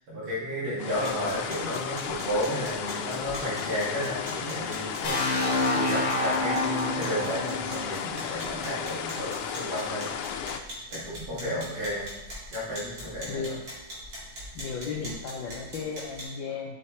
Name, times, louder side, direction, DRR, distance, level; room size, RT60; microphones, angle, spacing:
voice 1, 0.1-5.4 5.7-10.6 10.9-12.1 12.5-13.4, equal, 80° right, -9 dB, 3.3 m, -33 dB
sound 1, 0.8-10.6, left 8 dB, 85° left, 1.5 m, -34 dB
sound 2, 0.9-16.2, equal, 60° right, 2.9 m, -43 dB
sound 3, 5.0-8.9, left 2 dB, 45° left, 0.7 m, -28 dB
voice 2, 11.3-11.7 13.3-13.6 14.5-16.8, left 5 dB, 70° left, -2 dB, 1.3 m, -35 dB
7.5 x 6.5 x 3.1 m, 1.0 s
omnidirectional pair, 2.4 m